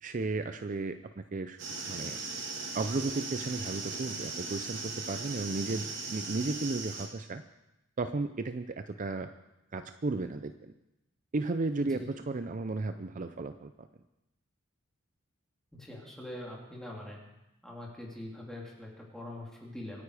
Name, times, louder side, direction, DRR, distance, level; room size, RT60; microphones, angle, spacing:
voice 1, 0.0-1.6 1.9-2.2 2.7-7.4 8.0-9.3 9.7-10.7 11.3-13.9, right 3 dB, 40° right, 9 dB, 0.5 m, -34 dB
sound 1, 1.6-7.1, right 3 dB, 65° right, 3.2 m, -38 dB
voice 2, 15.7-17.2 17.6-20.0, left 1 dB, ahead, -3 dB, 3.5 m, -43 dB
25.0 x 9.6 x 5.0 m, 0.94 s
head